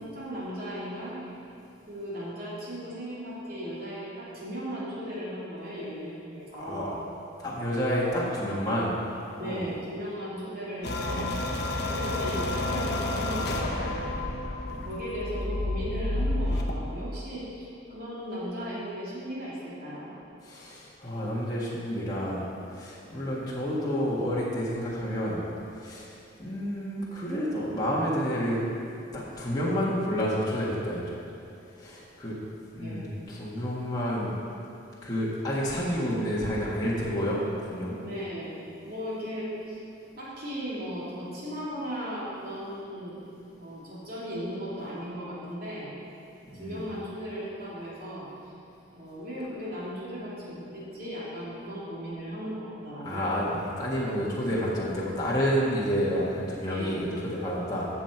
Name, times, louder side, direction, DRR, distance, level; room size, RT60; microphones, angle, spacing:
voice 1, 0.0-1.4 1.9-7.0 9.4-11.3 11.9-14.1 14.8-20.1 32.8-33.2 38.0-38.5 38.8-39.8 40.2-45.9 46.5-48.3 48.9-53.3 56.7-57.1, equal, 50° right, -8 dB, 2.9 m, -37 dB
voice 2, 6.6-6.9 7.4-8.9 9.4-9.7 14.7-15.0 20.4-25.4 25.8-28.6 29.1-31.1 31.8-32.4 32.7-34.3 35.0-37.9 46.5-46.9 53.0-57.9, equal, 20° left, -7 dB, 1.6 m, -29 dB
sound 1, 10.8-16.7, left 2 dB, 55° left, 1.1 m, -30 dB
14.0 x 7.3 x 4.6 m, 2.6 s
head